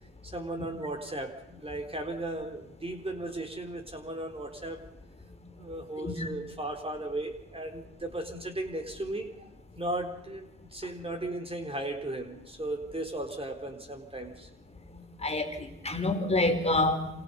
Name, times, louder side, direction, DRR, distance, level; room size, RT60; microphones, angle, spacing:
voice 1, 0.2-4.8 5.6-9.5 9.8-14.5, right 1 dB, 15° right, 5 dB, 3.9 m, -36 dB
voice 2, 14.9-17.1, left 2 dB, 20° left, 6 dB, 5.1 m, -28 dB
29.0 x 27.5 x 5.6 m, 0.90 s
supercardioid pair, 70°, 35 cm